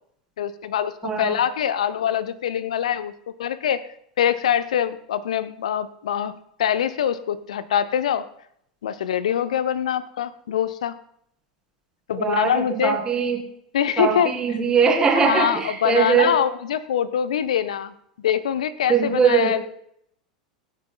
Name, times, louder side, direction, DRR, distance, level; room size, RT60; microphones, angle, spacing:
voice 1, 0.4-3.1 3.4-3.8 4.2-8.3 8.8-11.0 12.1-13.0 13.7-14.3 15.1-19.6, left 9 dB, 65° left, 14 dB, 0.7 m, -24 dB
voice 2, 1.0-1.4 12.2-13.4 14.0-16.4 18.9-19.6, right 6 dB, 20° right, 0 dB, 2.9 m, -21 dB
23.0 x 9.1 x 2.3 m, 0.71 s
figure-of-eight pair, 85°, 4 cm